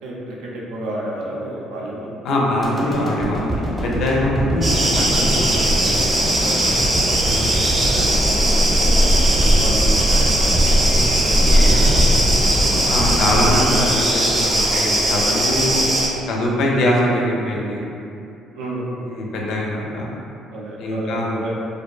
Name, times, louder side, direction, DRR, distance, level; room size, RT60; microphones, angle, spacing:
voice 1, 0.0-2.1 4.5-4.6 6.4-7.3 7.9-8.8 9.3-12.0 16.6-16.9 18.5-18.9 20.5-21.5, right 1 dB, 85° right, -5 dB, 0.5 m, -32 dB
voice 2, 2.2-6.1 7.2-7.6 12.9-15.8 16.3-17.8 19.0-20.1 20.8-21.4, left 1 dB, 70° left, -2 dB, 0.4 m, -23 dB
sound 1, 2.6-14.9 15.2-15.3, right 1 dB, 10° right, 0.8 m, -25 dB
sound 2, 4.6-16.1, right 1 dB, 30° right, 0.5 m, -18 dB
2.5 x 2.2 x 2.2 m, 2.7 s
cardioid pair, 90°, 0 cm